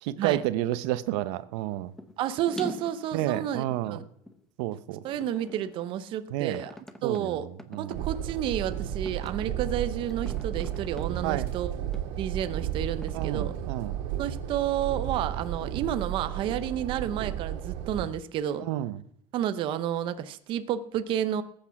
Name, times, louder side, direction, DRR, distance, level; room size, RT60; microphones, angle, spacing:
voice 1, 0.0-1.9 3.1-4.0 4.6-5.0 6.3-6.6 7.0-7.4 7.7-8.0 11.2-11.5 13.1-14.0 18.6-19.0, right 14 dB, 85° right, 0.9 m, -30 dB
sound 1, 2.0-2.1 2.5-4.4 5.1-5.9 6.5-7.2 7.6-8.0 8.6-8.7 9.1-9.5 10.1-11.0 11.9-12.0 13.0-13.1, left 1 dB, 5° left, 0.8 m, -43 dB
voice 2, 2.2-4.0 5.0-7.5 7.8-11.7 12.2-13.6 14.2-18.6 19.3-21.4, right 10 dB, 35° right, 0.7 m, -31 dB
sound 2, 7.9-18.0, right 10 dB, 65° right, 2.0 m, -33 dB
20.0 x 8.6 x 5.9 m
cardioid pair, 175°, 14 cm